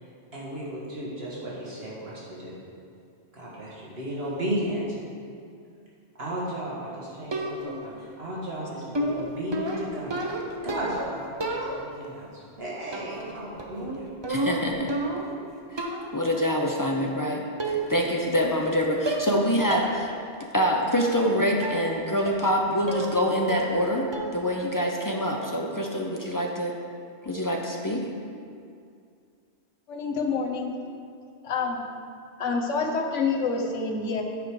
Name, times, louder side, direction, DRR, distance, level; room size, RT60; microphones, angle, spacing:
voice 1, 0.0-2.5 3.3-4.8 6.2-10.2 10.6-11.3 11.5-14.1, equal, 55° right, -7 dB, 1.7 m, -34 dB
sound 1, 7.3-7.9 8.9-11.1 11.4-12.1 12.9-13.3 13.6-15.4 15.8-16.2 17.1-17.2 17.6-18.1 18.3-18.7 19.1-19.4 19.7-19.9 20.3-20.4 21.6-21.9 22.3-22.6 22.9-23.2 23.5-23.9 24.1-24.5, right 2 dB, 30° right, 0.6 m, -31 dB
voice 2, 14.3-14.9 15.7-15.9 16.1-20.1 20.5-24.1 24.3-26.7 27.2-28.0, equal, 30° left, 0 dB, 0.3 m, -25 dB
voice 3, 29.9-30.7 31.4-31.8 32.4-34.2, left 4 dB, 80° left, 1 dB, 1.2 m, -27 dB
8.8 x 5.0 x 4.7 m, 2.4 s
omnidirectional pair, 1.2 m